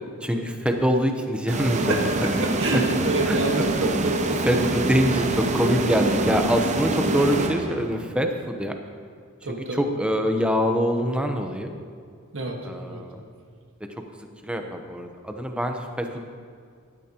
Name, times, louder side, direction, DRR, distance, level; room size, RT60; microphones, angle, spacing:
voice 1, 0.2-2.3 2.7-2.8 3.2-3.7 4.5-8.8 9.5-11.7 12.6-13.2 14.2-16.2, equal, 5° right, 4 dB, 0.9 m, -25 dB
sound 1, 1.5-8.1, right 2 dB, 35° right, 0.7 m, -25 dB
voice 2, 2.4-4.7 9.4-9.8 12.3-12.6 12.9-13.0, right 2 dB, 60° right, 0 dB, 1.6 m, -27 dB
16.5 x 12.0 x 3.0 m, 2.1 s
head